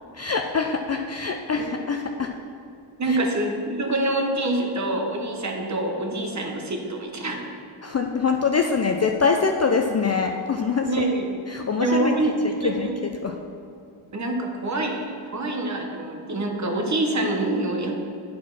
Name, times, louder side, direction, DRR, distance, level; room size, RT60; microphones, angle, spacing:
voice 1, 0.1-2.3 3.0-3.2 7.8-11.1 11.5-13.4, left 5 dB, 35° left, 3 dB, 0.4 m, -24 dB
voice 2, 3.0-7.6 10.9-11.3 11.8-12.3 12.6-13.0 14.1-18.0, right 2 dB, 35° right, 2 dB, 1.0 m, -26 dB
9.3 x 4.4 x 6.0 m, 2.5 s
wide cardioid pair, 135°, 49 cm